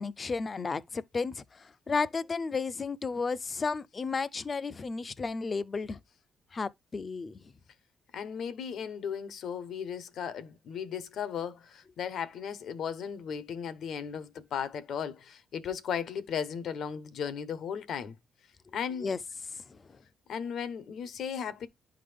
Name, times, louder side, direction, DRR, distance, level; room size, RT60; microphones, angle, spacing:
voice 1, 0.0-6.0 6.5-7.4 19.0-19.2 19.5-19.6, left 4 dB, 35° left, 0.5 m, -33 dB
voice 2, 8.1-18.2 18.7-19.1 20.3-21.7, left 7 dB, 70° left, 0.9 m, -36 dB
11.0 x 3.8 x 3.4 m
cardioid pair, 90°, 0 cm